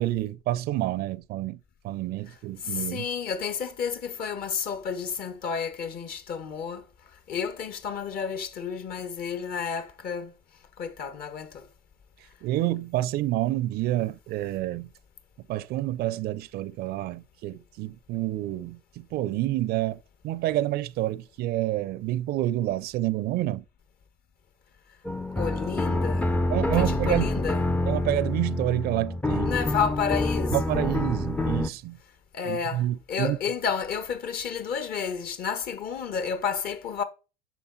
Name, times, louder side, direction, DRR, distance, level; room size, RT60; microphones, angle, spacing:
voice 1, 0.0-3.0 12.4-14.9 15.5-23.6 26.5-27.3 27.9-29.5 30.5-32.0 32.4-33.4, right 15 dB, 50° right, 0.6 m, -28 dB
voice 2, 2.6-6.9 7.3-10.3 10.8-11.7 25.4-26.4 26.7-27.6 29.4-30.7 32.3-37.0, left 6 dB, 50° left, 1.4 m, -31 dB
sound 1, 25.0-31.7, left 2 dB, 5° left, 0.6 m, -27 dB
9.1 x 5.9 x 4.1 m
hypercardioid pair, 75°, 20 cm